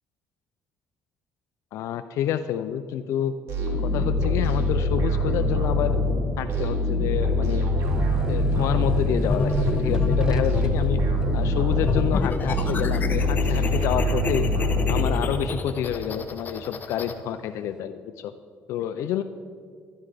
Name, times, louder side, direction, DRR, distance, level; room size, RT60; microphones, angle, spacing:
voice 1, 1.7-3.4 3.7-6.0 6.4-7.7 8.3-9.5 9.8-11.0 11.3-14.5 14.9-18.3 18.7-19.2, left 10 dB, 75° left, 11 dB, 0.4 m, -28 dB
sound 1, 3.5-15.7, left 1 dB, 65° right, 3.3 m, -24 dB
sound 2, 7.8-15.1 15.5-16.2, right 1 dB, 15° right, 0.5 m, -34 dB
sound 3, 9.3-10.9 11.6-17.1, left 3 dB, 40° left, 1.0 m, -29 dB
12.0 x 11.5 x 4.9 m, 2.2 s
cardioid pair, 100°, 5 cm